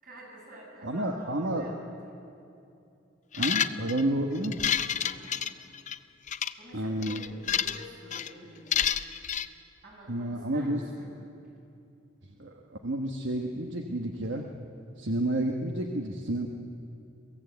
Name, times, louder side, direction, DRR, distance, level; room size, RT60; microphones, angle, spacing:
voice 1, 0.0-2.2 4.9-5.4 6.6-8.8 9.8-11.1, right 1 dB, 50° right, -3 dB, 7.0 m, -48 dB
voice 2, 0.8-1.7 3.3-4.6 6.7-7.2 10.1-10.8 12.4-14.4 15.0-16.5, right 1 dB, 75° right, 2 dB, 1.2 m, -30 dB
sound 1, 3.3-4.0 4.4-6.0 6.3-6.5 7.0-7.8 8.1-8.3 8.7-9.5, left 9 dB, 40° left, 0.5 m, -29 dB
23.0 x 16.0 x 8.1 m, 2.6 s
head